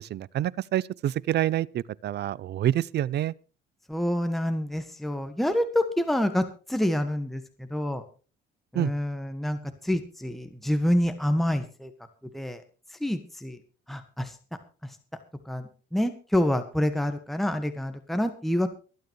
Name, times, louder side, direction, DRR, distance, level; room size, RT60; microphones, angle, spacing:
voice 1, 0.0-3.3 8.7-8.9, right 12 dB, 55° right, 0.6 m, -27 dB
voice 2, 3.9-8.0 8.7-11.9 12.3-12.6 12.9-13.6 13.9-14.4 14.8-15.0 15.4-18.7, left 1 dB, ahead, 1.6 m, -27 dB
24.5 x 9.2 x 3.2 m
cardioid pair, 110°, 21 cm